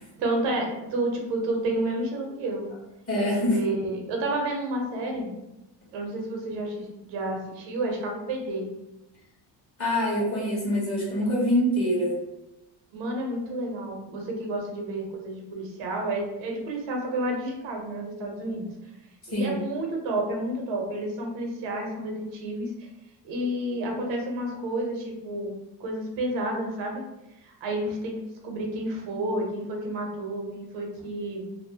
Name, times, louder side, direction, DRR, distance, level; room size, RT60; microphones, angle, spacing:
voice 1, 0.2-2.7 3.3-5.3 5.9-8.7 12.9-18.6 19.3-22.9 23.2-25.5 25.8-27.0 27.4-31.5, right 1 dB, 80° right, 1 dB, 0.8 m, -30 dB
voice 2, 3.1-3.6 9.8-12.2 19.3-19.6, equal, 30° left, -6 dB, 1.1 m, -25 dB
2.6 x 2.0 x 2.7 m, 0.94 s
cardioid pair, 140°, 45 cm